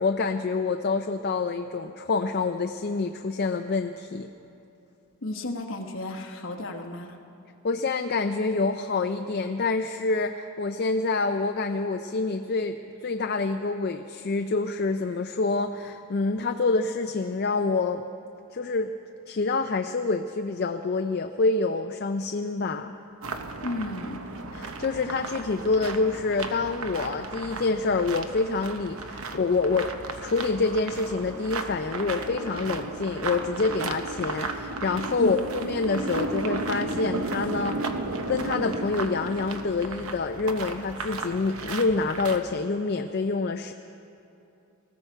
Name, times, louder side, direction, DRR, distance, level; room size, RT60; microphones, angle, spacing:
voice 1, 0.0-4.3 7.6-18.0 18.5-18.9 19.3-23.0 24.5-37.8 38.3-43.7, left 3 dB, 45° left, 6 dB, 0.4 m, -27 dB
voice 2, 5.2-7.2 23.6-24.2 35.2-35.3, left 2 dB, 60° left, 3 dB, 1.2 m, -33 dB
sound 1, 23.2-42.4, right 3 dB, 70° right, 0.9 m, -34 dB
sound 2, 25.4-41.4, equal, 35° right, 1.9 m, -52 dB
20.0 x 14.5 x 4.5 m, 2.9 s
head